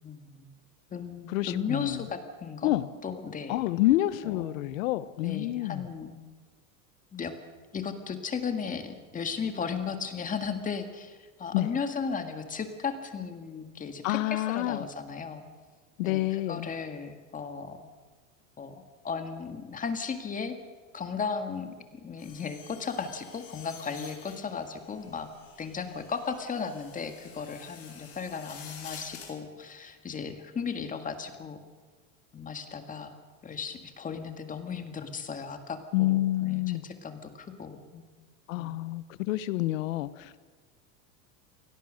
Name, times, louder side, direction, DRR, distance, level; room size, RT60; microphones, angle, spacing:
voice 1, 0.0-0.5 0.9-2.7 3.0-3.6 4.2-4.6 5.2-6.2 7.1-7.3 7.7-15.4 16.0-16.2 16.5-17.9 18.6-20.6 20.9-25.3 25.6-31.6 32.3-38.0 38.5-38.8, left 5 dB, 20° left, 7 dB, 1.8 m, -36 dB
voice 2, 1.3-2.0 2.6-2.9 3.5-5.9 11.5-11.8 14.0-14.8 16.0-16.7 35.9-36.8 38.5-40.4, left 16 dB, 90° left, 16 dB, 1.2 m, -28 dB
sound 1, 22.2-29.3, left 7 dB, 35° left, 5.2 m, -49 dB
23.5 x 17.5 x 6.5 m, 1.4 s
supercardioid pair, 140°, 39 cm